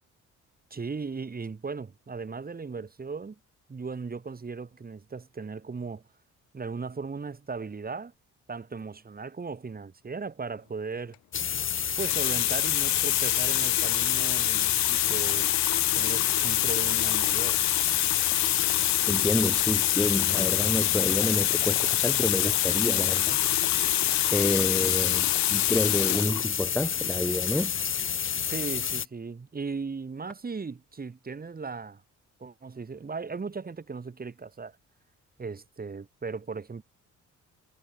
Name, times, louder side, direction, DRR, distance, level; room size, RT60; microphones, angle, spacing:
voice 1, 0.7-3.4 3.7-6.0 6.5-8.1 8.5-11.2 12.0-15.5 15.9-17.6 28.5-32.0 32.4-34.8 35.4-36.8, right 4 dB, 30° right, 3.9 m, -37 dB
Water tap faucet, 11.1-11.4 11.9-26.4 27.3-27.5, left 17 dB, 70° left, 0.4 m, -26 dB
sound 1, 11.3-29.1, left 8 dB, 40° left, 1.2 m, -30 dB
voice 2, 19.1-23.4 24.3-27.7, left 1 dB, 5° left, 0.9 m, -29 dB
cardioid pair, 90°, 30 cm